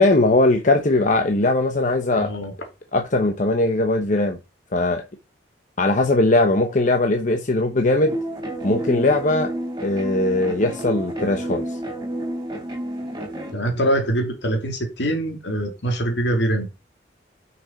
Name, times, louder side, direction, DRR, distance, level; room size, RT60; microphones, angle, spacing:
voice 1, 0.0-2.3 2.9-4.4 4.7-5.0 5.8-8.2 8.6-9.5 9.8-11.8, left 2 dB, 45° left, 0.9 m, -19 dB
voice 2, 2.1-2.5 13.5-16.7, right 1 dB, 70° left, 2.6 m, -23 dB
sound 1, 8.1-13.5, right 1 dB, 25° right, 3.3 m, -30 dB
6.1 x 6.0 x 5.2 m
head